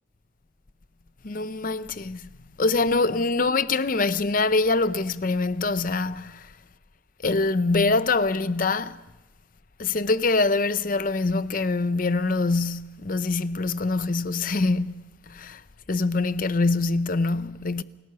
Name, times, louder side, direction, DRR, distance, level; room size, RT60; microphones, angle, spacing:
voice 1, 1.2-2.3 2.6-6.5 7.2-9.0 9.8-15.6 15.9-17.8, left 3 dB, 45° left, 0.7 m, -24 dB
28.5 x 17.0 x 6.9 m
head